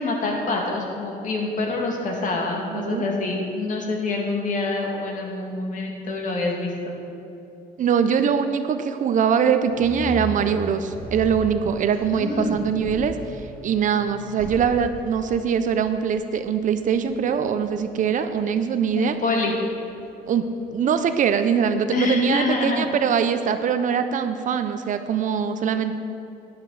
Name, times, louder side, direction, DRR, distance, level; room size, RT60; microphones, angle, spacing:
voice 1, 0.0-7.0 12.1-12.6 19.0-19.6 21.9-22.9, left 3 dB, 50° left, 0 dB, 2.2 m, -26 dB
voice 2, 2.7-3.1 7.8-13.1 13.6-19.1 20.3-20.5 20.7-25.9, right 7 dB, 50° right, 9 dB, 0.6 m, -22 dB
sound 1, 9.7-20.8, left 1 dB, 5° left, 2.2 m, -39 dB
12.0 x 10.5 x 4.1 m, 2.8 s
cardioid pair, 110°, 17 cm